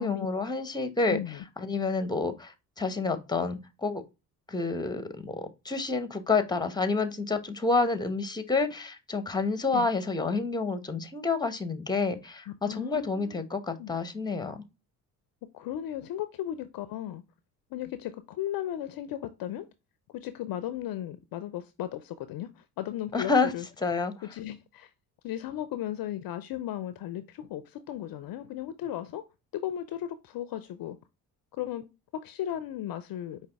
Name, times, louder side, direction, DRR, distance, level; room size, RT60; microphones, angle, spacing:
voice 1, 0.0-4.0 4.5-14.6 23.1-23.5 23.8-24.1, left 4 dB, 10° left, 0.8 m, -29 dB
voice 2, 1.1-1.4 9.7-9.9 12.6-13.4 13.8-13.9 15.5-17.2 17.7-19.7 20.1-23.7 24.3-24.9 25.2-29.2 29.5-31.0 31.6-31.9 32.1-33.4, left 11 dB, 50° left, 0.5 m, -36 dB
4.9 x 2.6 x 3.4 m
hypercardioid pair, 55°, 45 cm